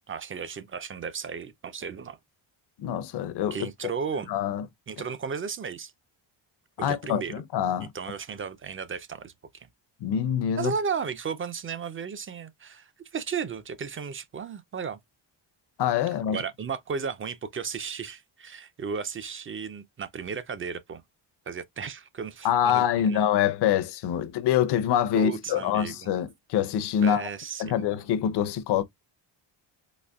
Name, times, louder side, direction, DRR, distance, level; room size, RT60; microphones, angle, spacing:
voice 1, 0.1-2.2 3.5-4.3 4.9-5.9 6.8-7.3 7.9-9.7 10.6-15.0 16.3-21.0 21.5-23.3 25.1-26.2 27.0-28.0, right 6 dB, 30° right, 0.4 m, -34 dB
voice 2, 2.8-3.7 4.3-4.6 6.8-7.9 10.0-10.7 15.8-16.4 22.4-27.3 27.6-28.8, left 9 dB, 60° left, 0.6 m, -25 dB
4.1 x 2.8 x 2.2 m
cardioid pair, 140°, 47 cm